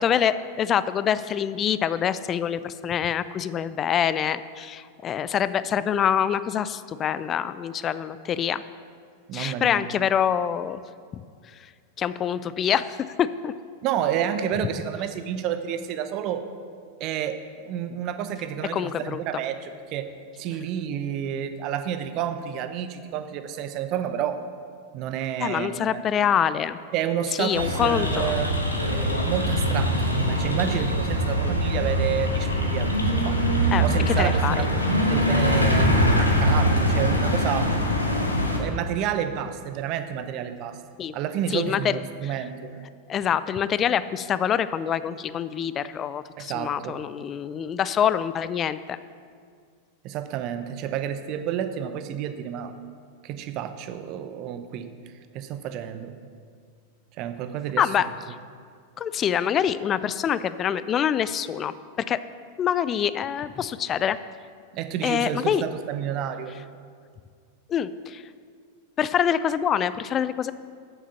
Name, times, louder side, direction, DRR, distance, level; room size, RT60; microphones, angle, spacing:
voice 1, 0.0-8.6 9.3-10.8 11.1-11.2 12.0-13.5 18.7-19.2 25.4-26.8 27.4-28.3 31.4-31.6 33.7-34.7 41.0-41.1 41.5-41.9 42.2-42.3 43.1-49.0 57.8-58.1 59.0-61.7 62.1-62.2 62.6-64.2 65.0-65.6 67.7-68.2 69.0-70.5, left 9 dB, 25° left, 15 dB, 0.4 m, -25 dB
voice 2, 9.3-9.8 13.8-16.5 17.0-24.4 24.9-26.0 26.9-33.4 33.8-34.8 35.1-37.7 38.6-40.8 41.1-42.7 46.4-47.0 50.0-52.7 53.2-54.9 55.3-56.1 57.2-57.9 64.7-66.5, right 9 dB, 40° right, 10 dB, 0.7 m, -30 dB
sound 1, 27.5-38.6, equal, 85° left, 1.3 m, -23 dB
Telephone, 29.6-37.7, right 1 dB, 75° right, 1.4 m, -31 dB
8.5 x 7.2 x 6.9 m, 2.1 s
figure-of-eight pair, 90°, 0 cm